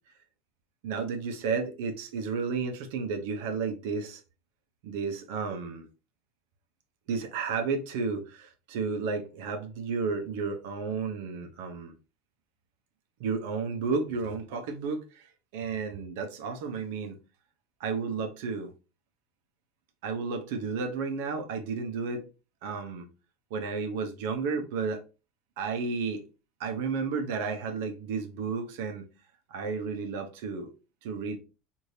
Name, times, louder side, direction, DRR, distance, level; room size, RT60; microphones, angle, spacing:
voice 1, 0.8-4.2 4.8-5.9 7.1-11.9 13.2-15.3 15.5-17.2 17.8-18.7 20.0-22.2 22.6-23.1 23.5-25.0 25.6-26.2 26.6-29.1 29.5-30.7 31.0-31.4, right 5 dB, 75° right, 0.7 m, -32 dB
3.2 x 2.7 x 2.6 m
hypercardioid pair, 95°, 0 cm